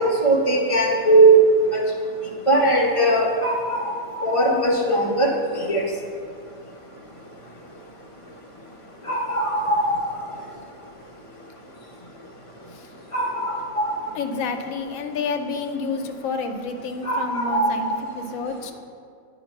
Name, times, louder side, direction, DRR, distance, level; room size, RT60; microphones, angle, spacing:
voice 1, 0.0-1.4 1.7-1.8 2.5-3.9 4.2-5.3 5.7-5.8 9.1-10.1 13.1-13.9 17.0-18.0, right 2 dB, 30° left, -2 dB, 0.7 m, -19 dB
voice 2, 14.1-18.7, left 4 dB, 75° left, 5 dB, 1.0 m, -29 dB
8.8 x 3.0 x 5.2 m, 2.3 s
omnidirectional pair, 1.5 m